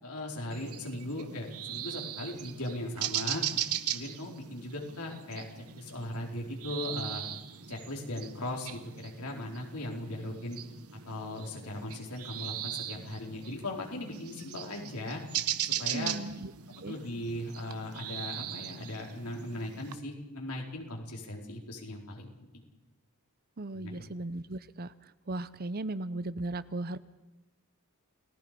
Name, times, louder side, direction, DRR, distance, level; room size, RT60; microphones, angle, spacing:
voice 1, 0.0-3.4 3.9-7.2 7.7-10.6 11.1-15.2 15.6-16.1 16.9-22.5 23.7-24.0, left 1 dB, 90° left, 0 dB, 4.7 m, -38 dB
sound 1, 0.5-19.9, right 11 dB, 80° right, 1.0 m, -39 dB
voice 2, 15.9-16.5 16.8-17.0 23.6-27.0, right 2 dB, 45° right, 16 dB, 0.7 m, -37 dB
29.0 x 19.0 x 5.3 m, 0.98 s
head